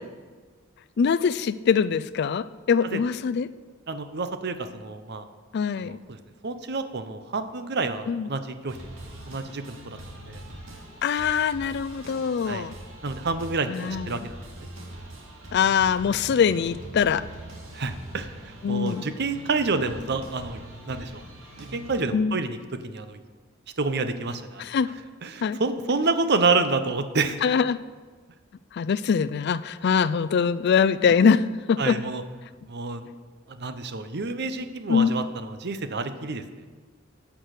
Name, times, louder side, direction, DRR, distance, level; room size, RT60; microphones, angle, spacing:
voice 1, 1.0-3.5 5.5-6.0 8.1-8.3 11.0-12.7 13.7-14.3 15.5-17.2 18.6-19.1 22.1-22.4 24.6-24.9 25.4-25.6 27.4-27.8 28.7-32.0 34.9-35.1, left 6 dB, 55° left, 16 dB, 0.4 m, -23 dB
voice 2, 3.9-5.3 5.9-6.2 6.4-8.8 9.3-10.0 10.3-10.4 12.4-12.7 13.0-14.7 17.7-20.6 20.9-21.2 21.7-22.6 22.8-23.2 23.8-24.6 25.2-27.4 31.8-32.2 32.7-33.1 33.5-36.4, right 3 dB, 55° right, 10 dB, 0.8 m, -28 dB
sound 1, 8.7-22.0, right 1 dB, 80° right, 2.4 m, -42 dB
11.5 x 6.0 x 8.2 m, 1.4 s
head